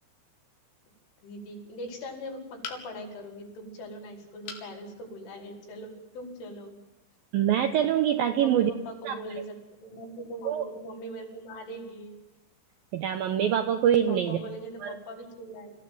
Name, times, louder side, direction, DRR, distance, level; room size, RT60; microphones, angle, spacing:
voice 1, 1.2-6.7 8.4-9.6 9.8-12.1 14.1-15.7, right 1 dB, 90° left, 1 dB, 7.6 m, -40 dB
sound 1, 2.6-3.2 4.5-4.7 5.3-5.4 5.7-5.8, left 5 dB, 70° left, 4.9 m, -40 dB
voice 2, 7.3-8.7 9.1-9.2 10.5-10.6 12.9-14.4 14.8-15.0, right 10 dB, 80° right, 7 dB, 2.1 m, -24 dB
27.0 x 16.5 x 9.4 m, 1.0 s
omnidirectional pair, 5.5 m